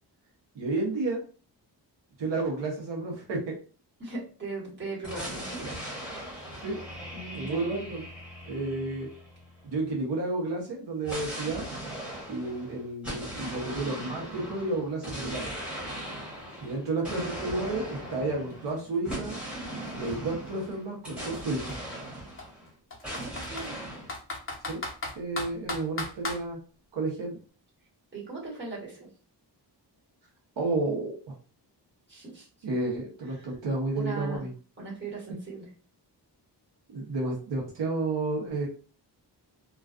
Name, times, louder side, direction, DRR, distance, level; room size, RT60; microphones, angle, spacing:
voice 1, 0.5-1.2 2.2-3.6 6.6-6.8 7.3-8.1 8.5-9.1 9.6-11.6 12.3-15.5 16.6-19.4 19.9-21.8 24.7-24.8 25.2-26.6 26.9-27.3 30.6-31.3 32.6-34.5 36.9-38.7, right 2 dB, 80° right, -1 dB, 0.9 m, -31 dB
voice 2, 4.0-5.8 7.1-7.8 19.8-20.1 23.1-23.8 28.1-29.1 32.1-32.5 33.3-33.5 33.9-34.4 34.8-35.7, right 3 dB, 25° right, -6 dB, 1.3 m, -39 dB
sound 1, 5.0-9.7 11.0-22.7 23.0-24.1, right 1 dB, 5° right, 1.1 m, -39 dB
Computer keyboard, 18.1-18.2 18.5-20.5 21.2-21.4 21.7-21.8 22.4-23.7 24.1-26.4, left 2 dB, 30° left, 0.7 m, -36 dB
2.3 x 2.3 x 2.4 m, 0.38 s
wide cardioid pair, 140°, 43 cm